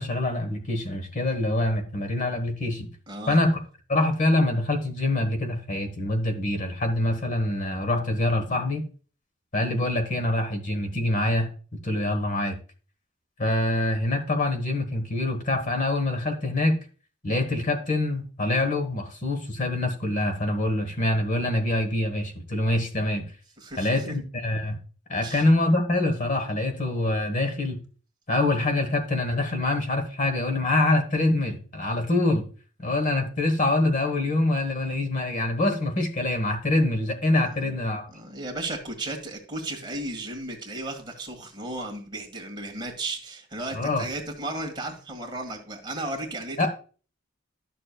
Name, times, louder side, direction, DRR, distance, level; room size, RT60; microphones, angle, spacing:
voice 1, 0.0-2.9 3.3-3.6 3.9-8.8 9.5-11.5 11.8-12.6 13.4-16.8 17.2-23.2 23.8-24.8 25.1-27.8 28.3-32.5 32.8-38.1 43.7-44.0 46.6-46.7, left 2 dB, 40° left, 6 dB, 1.2 m, -25 dB
voice 2, 3.1-3.4 23.6-24.0 25.2-25.4 37.5-37.7 38.1-46.7, right 2 dB, 25° right, 2 dB, 1.7 m, -35 dB
12.0 x 6.7 x 2.3 m, 0.38 s
head